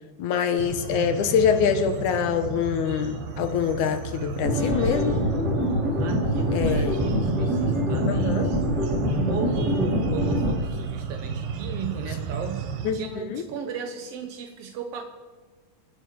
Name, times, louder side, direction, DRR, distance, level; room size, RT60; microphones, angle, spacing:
voice 1, 0.2-5.2 6.5-7.0 8.1-8.5 12.8-13.4, left 7 dB, 70° left, 9 dB, 2.2 m, -25 dB
sound 1, 0.6-12.9, right 6 dB, 85° right, 3.2 m, -34 dB
sound 2, 4.4-10.5, equal, 30° right, 3.7 m, -24 dB
voice 2, 6.0-8.9 9.3-15.0, right 7 dB, 70° right, 4 dB, 1.5 m, -34 dB
27.0 x 9.6 x 4.8 m, 1.4 s
omnidirectional pair, 3.9 m